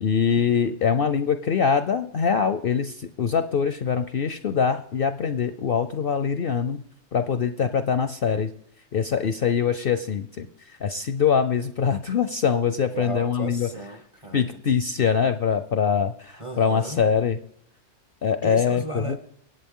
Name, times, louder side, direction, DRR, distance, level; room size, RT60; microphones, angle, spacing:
voice 1, 0.0-6.8 7.1-8.5 8.9-13.7 14.3-17.4 18.2-19.2, left 6 dB, 55° left, 10 dB, 0.6 m, -23 dB
voice 2, 12.9-14.6 16.4-17.0 18.4-19.2, right 2 dB, 30° right, 8 dB, 0.7 m, -35 dB
24.5 x 8.7 x 3.7 m, 0.70 s
omnidirectional pair, 1.4 m